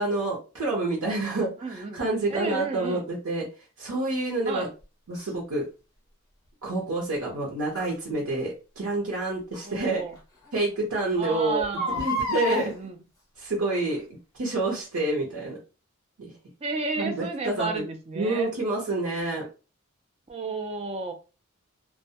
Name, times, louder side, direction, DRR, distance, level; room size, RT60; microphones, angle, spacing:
voice 1, 0.0-3.4 3.8-4.7 5.1-5.7 6.6-10.0 10.5-11.7 12.0-12.7 13.4-14.0 14.4-15.6 16.2-16.3 17.0-17.7 18.1-19.4, right 2 dB, 85° right, -2 dB, 0.7 m, -28 dB
voice 2, 1.6-2.0 2.3-3.1 4.5-4.7 9.6-10.2 11.2-12.1 12.5-13.0 16.6-18.5 20.3-21.1, right 3 dB, 30° right, 5 dB, 0.3 m, -32 dB
Crying sobbing, 5.1-5.3 7.7-7.9 9.5-9.6 10.1-10.2 10.5-10.6 11.6-12.7 13.6-14.0 14.5-14.6, left 2 dB, 15° left, 0.8 m, -30 dB
2.2 x 2.1 x 2.7 m, 0.32 s
head